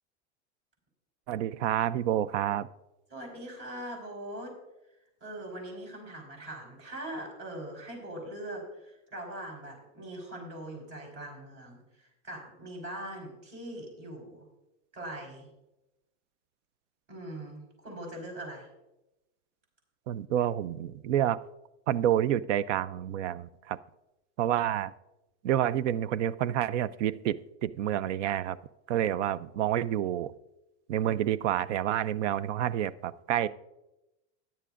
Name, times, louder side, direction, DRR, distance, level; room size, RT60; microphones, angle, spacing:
voice 1, 1.3-2.7 20.1-21.4 21.9-23.8 24.4-24.9 25.4-28.6 28.9-30.3 30.9-33.5, right 11 dB, 90° right, 18 dB, 0.6 m, -28 dB
voice 2, 3.1-4.6 5.2-14.5 14.9-15.5 17.1-18.7, right 1 dB, 30° right, 0 dB, 4.5 m, -41 dB
16.0 x 10.5 x 2.5 m, 0.94 s
supercardioid pair, 150°, 35 cm